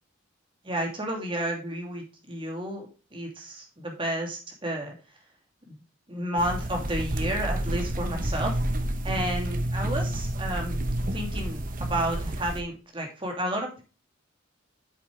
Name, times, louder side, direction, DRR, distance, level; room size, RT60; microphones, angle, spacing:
voice 1, 0.6-4.9 5.7-5.8 6.1-8.6 9.0-10.8 11.1-13.8, right 1 dB, 25° right, 1 dB, 2.8 m, -31 dB
sound 1, 6.4-12.6, right 1 dB, 40° right, 1.1 m, -29 dB
8.3 x 7.8 x 3.4 m, 0.32 s
head